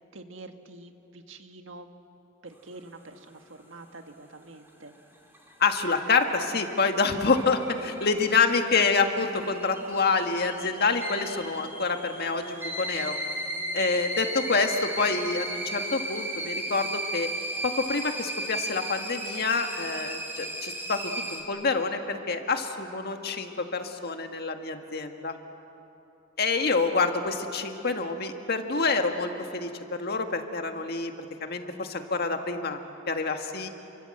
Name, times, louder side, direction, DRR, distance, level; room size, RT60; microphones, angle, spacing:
voice 1, 0.1-1.9 2.4-4.9 13.5-13.8, right 2 dB, 80° right, 6 dB, 1.7 m, -46 dB
sound 1, 5.1-21.4, right 1 dB, 10° right, 3.4 m, -36 dB
voice 2, 5.6-13.1 13.7-17.3 17.6-21.0 21.3-25.3 26.4-31.1 31.4-32.8 33.1-33.7, left 4 dB, 55° left, 5 dB, 1.8 m, -27 dB
29.5 x 24.0 x 7.8 m, 2.9 s
head